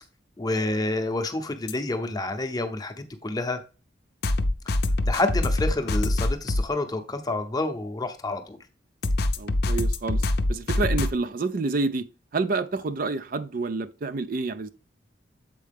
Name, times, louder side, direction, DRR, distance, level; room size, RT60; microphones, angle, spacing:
voice 1, 0.4-2.9 3.2-3.6 5.1-8.6, left 2 dB, 20° left, 0.7 m, -28 dB
sound 1, 1.7-1.8 4.2-6.6 9.0-11.1, left 2 dB, 55° left, 0.6 m, -24 dB
voice 2, 9.4-10.2 10.5-12.1 12.3-14.7, right 3 dB, 45° right, 0.4 m, -28 dB
7.5 x 4.6 x 3.5 m
head